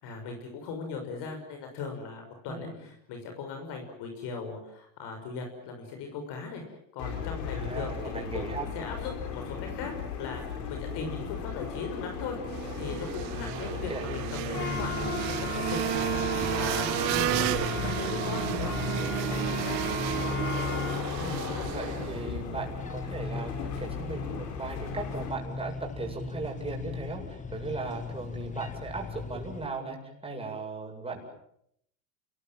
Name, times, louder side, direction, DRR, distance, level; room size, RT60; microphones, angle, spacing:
voice 1, 0.0-6.6 6.9-9.9 10.2-12.4 12.7-16.0 16.5-19.8, left 5 dB, 55° left, 4 dB, 6.3 m, -38 dB
sound 1, 7.0-25.3, left 6 dB, 90° left, 6.2 m, -36 dB
voice 2, 7.5-8.7 10.9-11.2 13.3-14.0 21.2-30.0 30.2-31.2, right 3 dB, 10° right, 1 dB, 7.8 m, -37 dB
sound 2, 12.5-22.3, right 16 dB, 85° right, 1.6 m, -32 dB
sound 3, 14.5-29.7, left 4 dB, 15° left, 1.3 m, -38 dB
29.0 x 21.0 x 7.8 m, 0.73 s
supercardioid pair, 120°, 49 cm